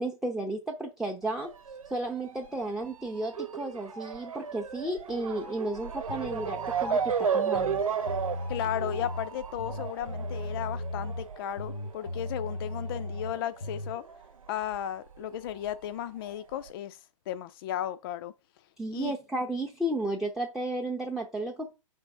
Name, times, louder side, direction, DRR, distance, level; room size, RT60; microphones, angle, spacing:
voice 1, 0.0-1.5 1.9-7.8 18.8-21.7, right 1 dB, ahead, 0.6 m, -33 dB
Motor vehicle (road) / Siren, 1.2-14.2 14.5-15.7 16.3-16.4 16.7-16.8, right 6 dB, 85° right, 1.0 m, -34 dB
sound 1, 6.1-7.1 7.5-9.3 9.6-11.3 11.6-14.0, left 1 dB, 85° left, 0.8 m, -37 dB
voice 2, 8.5-14.0 14.5-17.0 17.3-18.3 18.9-19.1, left 11 dB, 45° left, 0.4 m, -35 dB
5.0 x 3.5 x 5.3 m
hypercardioid pair, 130°, 17 cm